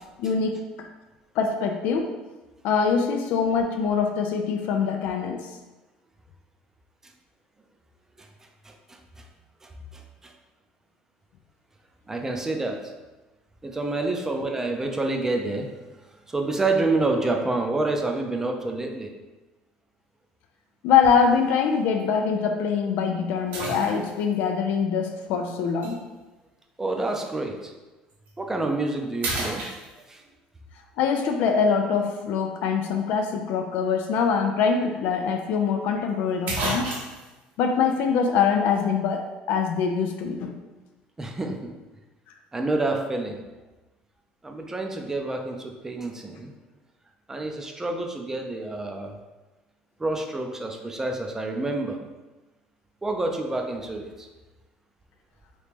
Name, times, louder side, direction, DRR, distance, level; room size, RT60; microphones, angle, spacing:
voice 1, 0.2-0.9 1.4-2.1 2.6-5.6 20.8-26.0 31.0-37.0 37.6-40.5, left 6 dB, 70° left, 4 dB, 0.4 m, -24 dB
voice 2, 8.6-9.3 9.6-10.3 12.1-12.8 13.6-15.7 16.3-19.1 26.8-27.7 28.4-29.6 30.1-30.2 41.2-41.7 42.5-43.4 44.4-46.5 47.3-49.1 50.0-52.0 53.0-54.3, right 2 dB, 15° right, 3 dB, 0.5 m, -28 dB
sound 1, 21.0-21.3 22.0-22.1 23.5-24.3 25.8-25.9 28.1-28.3 28.7-28.9 29.2-30.3 34.4-34.5 34.8-34.9 36.0-36.1 36.5-37.3, right 2 dB, 65° right, 1.0 m, -31 dB
3.0 x 2.7 x 3.4 m, 1.1 s
supercardioid pair, 100°, 3 cm